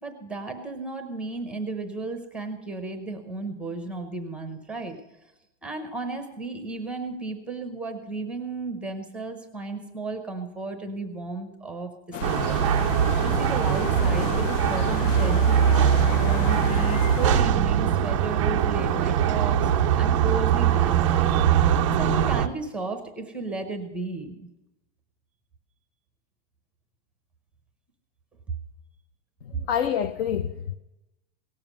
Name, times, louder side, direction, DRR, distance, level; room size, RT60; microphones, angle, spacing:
voice 1, 0.0-5.0 5.6-11.9 12.2-12.6 13.2-24.5, right 3 dB, 5° right, 0.7 m, -34 dB
sound 1, 12.1-17.4, left 10 dB, 80° left, 0.7 m, -33 dB
sound 2, 12.2-22.5, right 8 dB, 30° right, 0.4 m, -22 dB
voice 2, 29.4-30.7, left 9 dB, 50° left, 0.8 m, -27 dB
17.5 x 7.3 x 6.0 m
supercardioid pair, 175°, 37 cm